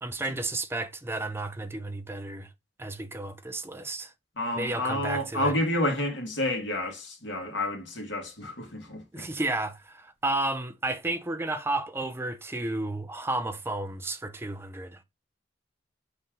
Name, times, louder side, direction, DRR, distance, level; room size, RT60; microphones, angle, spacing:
voice 1, 0.0-2.5 2.8-4.1 4.5-5.5 9.1-15.0, right 2 dB, 15° right, 0.6 m, -32 dB
voice 2, 4.4-9.3, left 1 dB, 80° left, 2.0 m, -30 dB
6.4 x 4.3 x 3.7 m
head